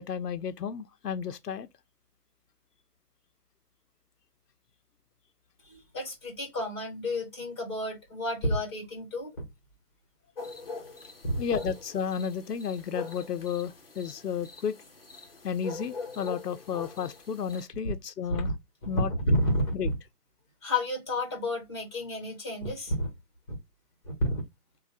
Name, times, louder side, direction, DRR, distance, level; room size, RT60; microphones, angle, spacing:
voice 1, 0.0-1.7 11.4-14.7 15.4-18.5 18.9-19.1 19.7-19.9, left 7 dB, 85° left, 0.6 m, -32 dB
voice 2, 5.7-9.4 11.3-11.4 18.3-18.5 18.8-19.7 20.6-23.1 24.2-24.4, left 1 dB, 15° left, 1.2 m, -30 dB
sound 1, 10.4-17.7, left 3 dB, 40° left, 0.7 m, -43 dB
3.1 x 2.2 x 2.6 m
figure-of-eight pair, 160°, 47 cm